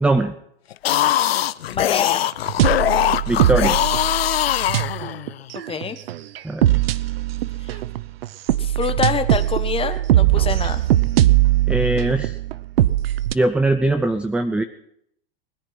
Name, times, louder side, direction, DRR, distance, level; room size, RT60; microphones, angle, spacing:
voice 1, 0.0-0.3 3.3-3.8 6.4-6.7 11.7-12.4 13.3-14.6, right 2 dB, 5° right, 10 dB, 0.6 m, -20 dB
sound 1, 0.7-5.5, left 12 dB, 90° left, 0.6 m, -21 dB
voice 2, 1.7-2.2 5.7-6.0 7.6-7.8 8.6-10.9, left 6 dB, 20° left, 9 dB, 1.5 m, -26 dB
sound 2, 2.5-13.3, right 14 dB, 80° right, 0.8 m, -20 dB
20.5 x 10.5 x 6.0 m, 0.73 s
hypercardioid pair, 105°, 29 cm